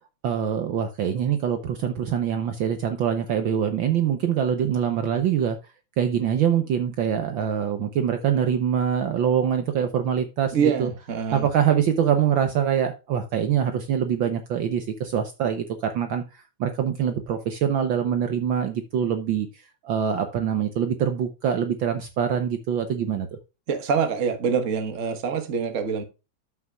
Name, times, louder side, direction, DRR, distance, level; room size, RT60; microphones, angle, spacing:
voice 1, 0.2-5.6 6.0-10.9 11.3-23.3, right 8 dB, 85° right, 1.0 m, -24 dB
voice 2, 10.5-11.5 23.7-26.0, right 6 dB, 50° right, 0.9 m, -25 dB
13.5 x 5.9 x 2.3 m
omnidirectional pair, 3.3 m